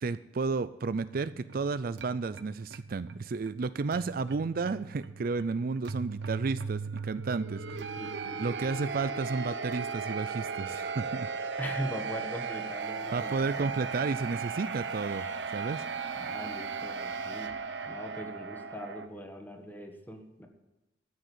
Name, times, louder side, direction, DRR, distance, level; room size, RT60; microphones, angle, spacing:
voice 1, 0.0-8.0 8.4-11.3 13.1-15.3 15.5-15.8, right 4 dB, 55° right, 14 dB, 0.4 m, -32 dB
sound 1, 1.0-19.1, right 5 dB, 70° right, 0.9 m, -37 dB
voice 2, 7.7-8.4 11.6-13.7 16.1-17.5 17.9-20.5, equal, 10° left, 4 dB, 1.8 m, -41 dB
13.0 x 6.5 x 9.8 m, 1.0 s
head